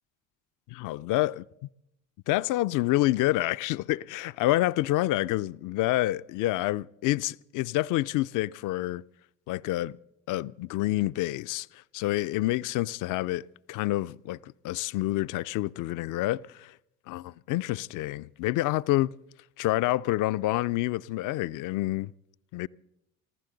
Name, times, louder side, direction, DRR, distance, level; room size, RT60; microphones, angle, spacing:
voice 1, 0.7-1.4 2.3-9.0 9.5-10.0 10.3-16.7 17.1-19.1 19.6-22.1 22.5-22.7, left 16 dB, 50° left, 0.5 m, -28 dB
24.5 x 15.0 x 3.9 m
hypercardioid pair, 60°, 41 cm